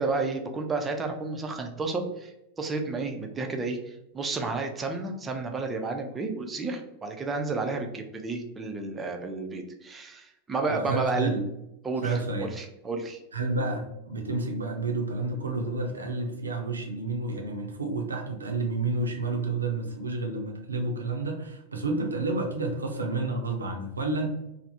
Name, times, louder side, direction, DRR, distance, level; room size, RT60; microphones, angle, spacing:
voice 1, 0.0-11.3 11.8-13.2, right 3 dB, 15° right, 4 dB, 0.4 m, -31 dB
voice 2, 10.7-11.4 12.0-12.5 13.3-24.3, right 3 dB, 75° right, 2 dB, 0.5 m, -30 dB
3.2 x 2.0 x 2.7 m, 0.86 s
figure-of-eight pair, 90°, 0 cm